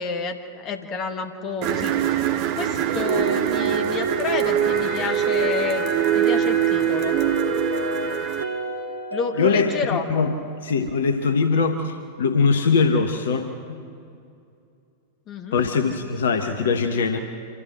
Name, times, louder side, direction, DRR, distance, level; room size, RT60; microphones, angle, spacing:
voice 1, 0.0-2.2 2.6-5.8 6.1-7.2 9.1-10.0 15.3-15.6, left 5 dB, 35° left, 6 dB, 1.8 m, -29 dB
sound 1, 1.6-8.4, right 10 dB, 45° right, 1.1 m, -23 dB
Mallet percussion, 2.9-11.0, right 3 dB, 80° right, 1.2 m, -34 dB
Wind instrument woodwind instrument, 4.6-9.2, left 2 dB, 15° left, 5.2 m, -32 dB
voice 2, 9.4-10.3 10.6-13.5 15.5-17.2, left 5 dB, 65° left, 7 dB, 1.2 m, -21 dB
26.0 x 14.5 x 7.6 m, 2.5 s
figure-of-eight pair, 90°, 0 cm